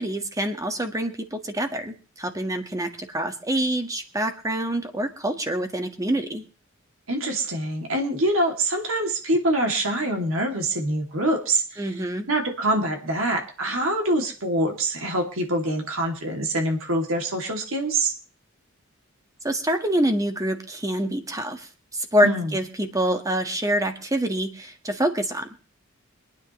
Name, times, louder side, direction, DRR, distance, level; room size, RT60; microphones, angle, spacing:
voice 1, 0.0-6.4 11.8-12.3 19.4-21.7 21.9-25.6, right 1 dB, 15° right, 6 dB, 1.6 m, -26 dB
voice 2, 7.1-11.9 12.3-18.1 22.2-22.5, right 1 dB, 70° right, 2 dB, 2.6 m, -25 dB
25.0 x 9.6 x 3.2 m, 0.37 s
head